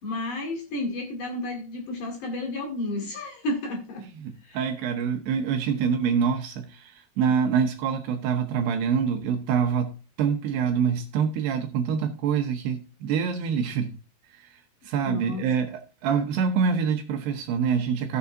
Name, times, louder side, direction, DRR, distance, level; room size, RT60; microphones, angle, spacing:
voice 1, 0.0-4.1 4.4-4.6 15.0-15.5, left 1 dB, 55° left, 3.0 m, -32 dB
voice 2, 4.2-9.9 10.2-14.0 14.3-14.5 14.8-18.2, right 6 dB, 75° right, 2.7 m, -25 dB
16.0 x 6.8 x 2.7 m
omnidirectional pair, 5.3 m